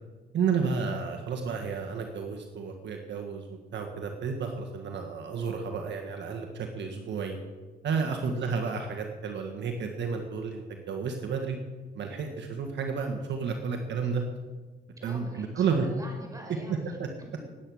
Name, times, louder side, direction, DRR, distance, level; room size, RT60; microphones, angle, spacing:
voice 1, 0.3-7.4 7.8-11.6 11.9-14.2 15.0-15.8 17.0-17.1, right 5 dB, 65° right, 4 dB, 1.7 m, -31 dB
voice 2, 15.0-17.5, equal, 15° right, 2 dB, 5.0 m, -45 dB
19.5 x 8.9 x 6.4 m, 1.4 s
cardioid pair, 90°, 20 cm